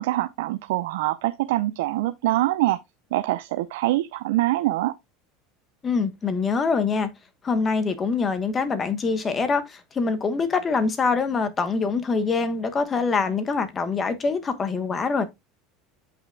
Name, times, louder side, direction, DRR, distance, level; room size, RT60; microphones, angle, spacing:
voice 1, 0.0-2.8 3.1-4.9, right 16 dB, 80° right, 0.5 m, -24 dB
voice 2, 5.8-7.1 7.4-15.3, left 4 dB, 25° left, 1.2 m, -24 dB
8.4 x 5.7 x 2.3 m
supercardioid pair, 120°, 0 cm